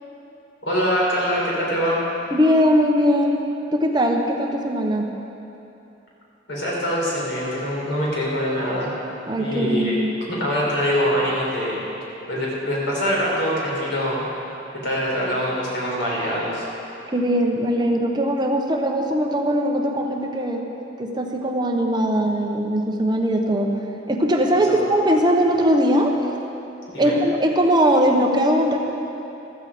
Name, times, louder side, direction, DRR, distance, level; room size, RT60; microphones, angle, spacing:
voice 1, 0.6-2.0 6.5-8.9 9.4-9.9 10.3-11.8 12.3-14.3 14.8-16.7 24.7-24.8 26.9-27.1, equal, 80° left, -4 dB, 4.1 m, -24 dB
voice 2, 2.3-3.4 3.7-5.1 9.3-10.1 17.1-20.7 21.0-23.8 24.1-26.3 27.0-28.9, equal, 25° right, 1 dB, 1.0 m, -20 dB
14.5 x 13.5 x 5.1 m, 2.9 s
head